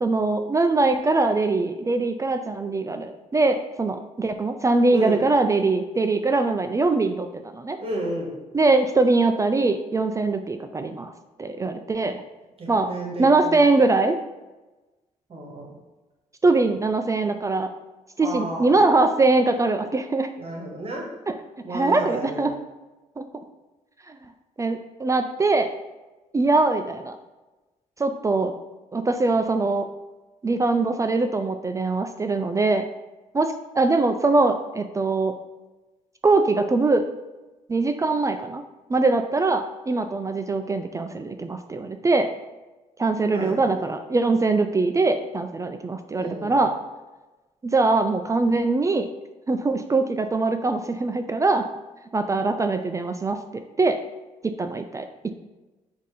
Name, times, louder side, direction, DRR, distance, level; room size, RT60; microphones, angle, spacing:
voice 1, 0.0-7.8 8.5-11.1 11.4-12.2 12.7-12.9 13.2-14.2 16.4-17.7 18.2-20.3 21.7-22.5 23.2-23.3 24.1-24.2 24.6-25.7 26.3-27.2 28.0-28.5 28.9-29.9 30.4-32.8 33.3-35.4 36.2-37.1 37.7-38.6 38.9-42.3 43.0-46.8 47.6-49.1 49.5-51.7 52.1-53.4 53.8-54.0 54.4-55.0, right 3 dB, 25° right, 7 dB, 0.3 m, -22 dB
voice 2, 4.9-5.2 7.8-8.3 12.6-13.6 15.3-15.7 18.2-18.7 20.4-21.1 21.6-22.5 43.3-43.7 46.1-46.6, right 1 dB, 45° right, -2 dB, 1.6 m, -32 dB
4.1 x 2.7 x 4.8 m, 1.1 s
cardioid pair, 75°, 13 cm